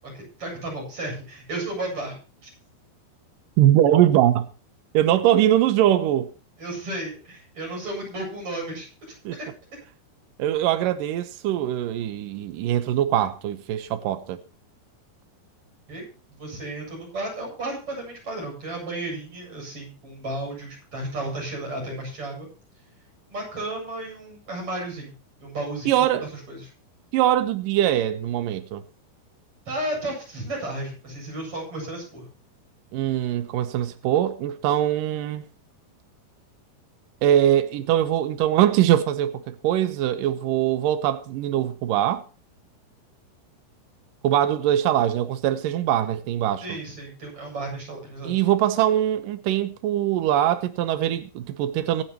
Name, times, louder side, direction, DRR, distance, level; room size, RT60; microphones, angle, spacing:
voice 1, 0.0-2.2 2.4-2.5 6.6-8.9 9.3-9.5 15.9-16.0 16.3-22.5 23.3-25.1 25.4-26.7 29.7-32.3 46.6-48.3, right 2 dB, 30° right, 8.8 m, -33 dB
voice 2, 3.6-4.5 4.9-6.3 9.3-9.4 10.4-14.4 25.9-26.3 27.1-28.8 32.9-35.4 37.2-42.2 44.2-46.8 48.2-52.0, right 12 dB, 75° right, 2.0 m, -22 dB
25.0 x 8.7 x 3.0 m
omnidirectional pair, 5.2 m